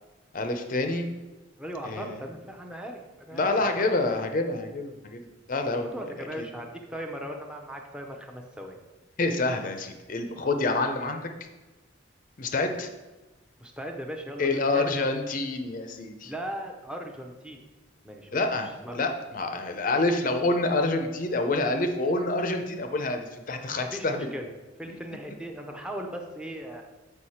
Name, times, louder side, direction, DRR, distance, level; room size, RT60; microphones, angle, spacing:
voice 1, 0.3-1.1 1.8-2.2 3.3-5.2 5.5-5.9 9.2-11.3 12.4-12.9 14.4-16.3 18.3-24.3 24.9-25.0, left 2 dB, 45° left, 6 dB, 0.5 m, -27 dB
voice 2, 1.6-3.5 3.8-3.9 5.8-8.8 13.6-14.9 16.2-17.6 18.0-18.4 18.8-19.0 23.8-24.5 24.8-26.8, equal, 5° right, 1 dB, 0.6 m, -38 dB
6.4 x 4.9 x 4.3 m, 1.1 s
head